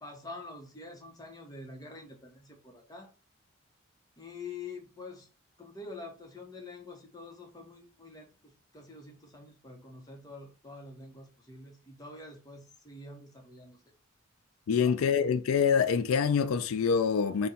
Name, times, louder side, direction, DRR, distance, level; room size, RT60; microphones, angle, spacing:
voice 1, 0.0-3.1 4.2-5.3 5.6-13.8 14.8-14.9, left 3 dB, 20° left, 0.8 m, -46 dB
voice 2, 14.7-17.5, left 6 dB, 80° left, 0.4 m, -25 dB
4.2 x 2.2 x 3.8 m
head